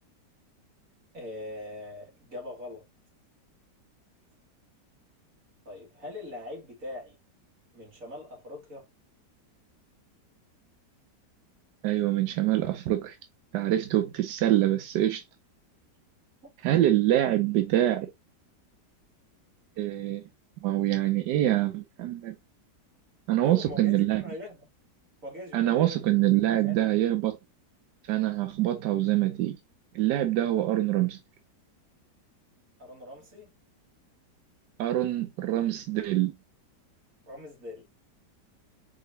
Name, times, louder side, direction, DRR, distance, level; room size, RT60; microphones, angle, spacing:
voice 1, 1.1-2.8 5.6-7.2 7.7-8.9 23.4-24.7 25.2-26.1 26.5-26.8 32.8-33.5 37.3-37.8, left 1 dB, 50° right, 2.5 m, -41 dB
voice 2, 11.8-13.2 13.5-15.2 16.6-18.1 19.8-20.2 20.6-22.3 23.3-24.2 25.5-27.4 28.1-29.6 29.9-31.2 34.8-36.3, right 14 dB, 90° right, 1.3 m, -25 dB
4.8 x 3.7 x 2.7 m
omnidirectional pair, 1.8 m